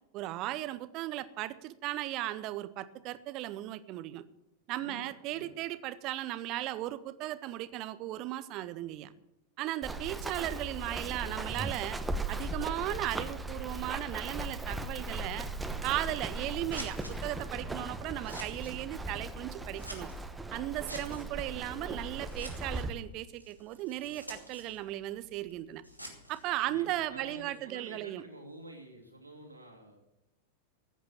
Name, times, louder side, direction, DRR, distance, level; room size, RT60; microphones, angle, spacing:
voice 1, 0.1-4.2 4.7-9.1 9.6-12.0 12.3-15.5 15.8-20.1 20.5-25.8 26.3-28.2, right 15 dB, 40° right, 15 dB, 0.8 m, -36 dB
voice 2, 4.8-5.5 26.6-30.0, right 1 dB, 85° right, 0 dB, 2.8 m, -49 dB
Run, 9.8-22.9, right 2 dB, 10° right, 1.1 m, -38 dB
Scissors, 16.7-27.4, equal, 90° left, 2.3 m, -50 dB
15.0 x 8.6 x 7.4 m, 0.90 s
figure-of-eight pair, 90°, 0 cm